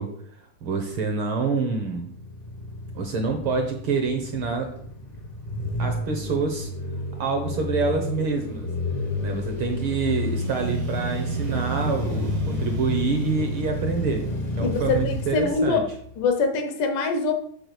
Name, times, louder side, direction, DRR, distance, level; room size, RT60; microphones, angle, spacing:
voice 1, 0.0-2.1 2.9-4.7 5.8-6.7 7.2-8.7 9.2-14.3 14.6-15.8, right 4 dB, 70° right, 4 dB, 1.3 m, -27 dB
sound 1, 1.9-16.2, left 1 dB, 65° left, 0.4 m, -30 dB
Telephone, 10.3-13.5, right 9 dB, 85° right, 1.5 m, -35 dB
voice 2, 14.6-15.8 16.2-17.3, left 4 dB, 85° left, 6 dB, 2.7 m, -24 dB
7.8 x 4.2 x 6.9 m, 0.63 s
omnidirectional pair, 3.5 m